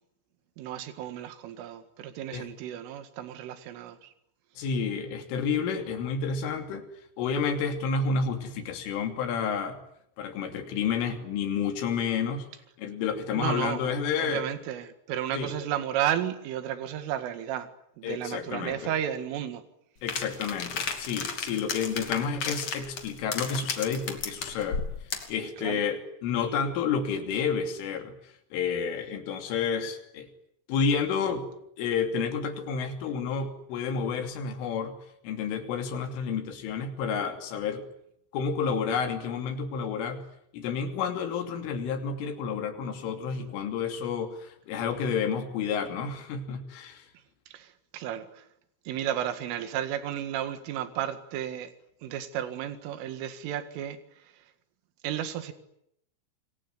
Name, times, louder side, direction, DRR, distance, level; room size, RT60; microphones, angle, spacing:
voice 1, 0.6-4.1 13.3-13.9 14.2-17.7 18.0-19.6 25.6-25.8 43.4-43.5 47.5-47.7 47.9-48.4 48.9-51.7 52.0-54.0 55.0-55.5, right 10 dB, 75° right, 10 dB, 4.4 m, -33 dB
voice 2, 4.6-6.9 7.2-9.8 10.2-12.5 12.8-14.4 15.3-15.6 18.0-18.9 20.0-24.9 25.3-30.3 30.7-31.4 31.8-35.0 35.2-37.8 38.3-40.2 40.5-47.1, left 6 dB, 75° left, 6 dB, 5.3 m, -30 dB
sound 1, 20.1-25.4, left 5 dB, 40° left, 3.3 m, -34 dB
28.0 x 22.5 x 9.4 m, 0.76 s
omnidirectional pair, 5.8 m